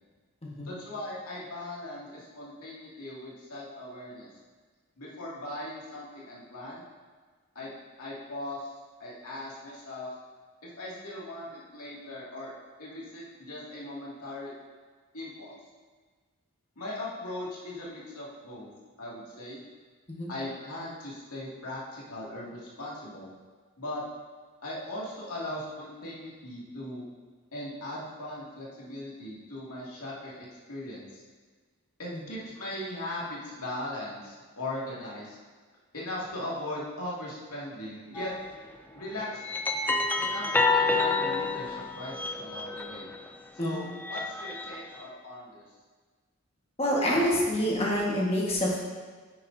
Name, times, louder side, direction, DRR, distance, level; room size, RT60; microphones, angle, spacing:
voice 1, 0.6-4.3 5.0-6.8 7.5-7.7 8.0-8.7 9.0-10.1 10.6-12.5 12.8-14.5 15.1-15.6 16.8-18.7 19.0-19.6 20.3-23.3 23.8-24.0 24.6-27.0 27.5-31.2 32.0-35.4 35.9-38.3 38.9-39.4 40.2-43.1 43.5-45.6, left 1 dB, 85° left, -6 dB, 2.4 m, -39 dB
sound 1, 38.2-38.5 39.1-43.3 43.8-45.0, left 3 dB, 10° left, 0.3 m, -29 dB
voice 2, 46.8-48.8, equal, 25° left, -3 dB, 1.5 m, -27 dB
9.4 x 9.4 x 2.7 m, 1.4 s
head